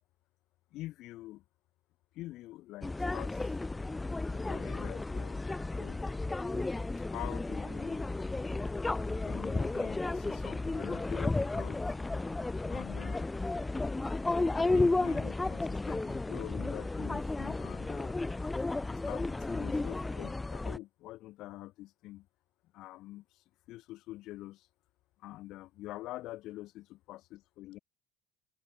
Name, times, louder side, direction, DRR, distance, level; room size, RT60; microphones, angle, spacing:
voice 1, 0.7-1.4 2.1-3.5 4.3-5.5 5.8-6.0 7.1-8.1 9.2-11.8 12.6-13.3 14.5-18.2 18.9-22.3 22.7-24.7 25.2-27.8, left 16 dB, 60° left, 6.5 m, -45 dB
sound 1, 2.8-20.8, left 2 dB, 15° left, 3.3 m, -33 dB
figure-of-eight pair, 60°, 0 cm